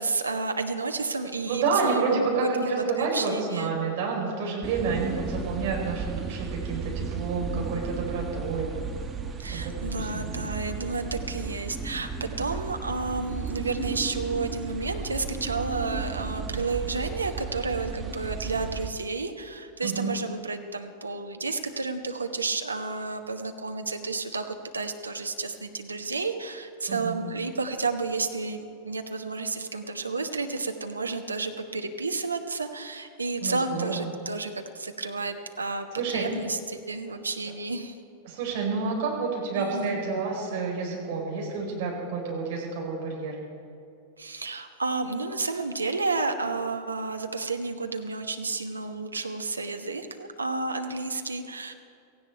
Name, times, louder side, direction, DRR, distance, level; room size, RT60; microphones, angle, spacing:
voice 1, 0.0-2.0 2.6-2.7 3.0-3.7 9.4-38.0 39.5-40.0 44.2-51.7, right 3 dB, 80° right, 6 dB, 1.1 m, -31 dB
voice 2, 1.5-8.7 9.5-9.7 10.0-10.3 19.8-20.1 26.9-27.2 33.4-34.1 36.0-36.2 38.2-43.4, right 4 dB, 50° right, -1 dB, 4.4 m, -29 dB
sound 1, 4.6-18.9, right 5 dB, 20° right, 1.2 m, -34 dB
17.0 x 15.5 x 4.6 m, 2.6 s
figure-of-eight pair, 90°, 0 cm